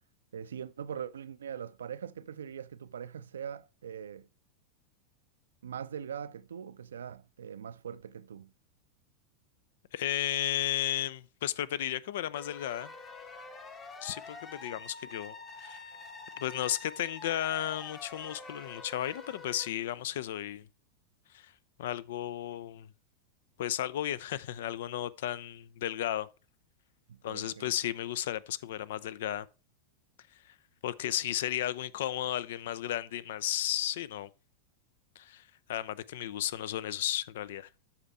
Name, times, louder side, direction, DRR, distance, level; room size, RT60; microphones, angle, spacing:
voice 1, 0.3-4.3 5.6-8.5 27.1-27.7, right 8 dB, 65° right, 0.5 m, -42 dB
voice 2, 9.9-12.9 14.0-16.0 16.4-20.7 21.3-21.5 21.8-22.9 23.6-26.3 27.2-29.5 30.5-30.6 30.8-34.3 35.2-37.7, left 12 dB, 55° left, 0.5 m, -34 dB
sound 1, 12.3-19.7, left 3 dB, 25° left, 1.2 m, -47 dB
13.0 x 4.4 x 3.3 m
figure-of-eight pair, 90°, 0 cm